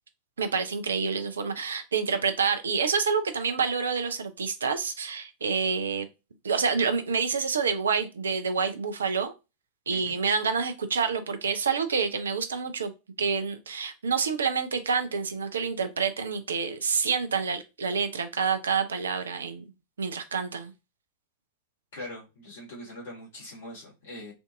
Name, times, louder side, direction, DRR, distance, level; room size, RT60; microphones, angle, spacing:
voice 1, 0.4-6.1 6.4-9.3 9.9-12.9 13.2-19.7 20.0-20.7, right 5 dB, 70° right, 0.5 m, -28 dB
voice 2, 21.9-24.3, left 1 dB, 60° left, 1.8 m, -42 dB
3.4 x 2.5 x 2.5 m
figure-of-eight pair, 90°, 0 cm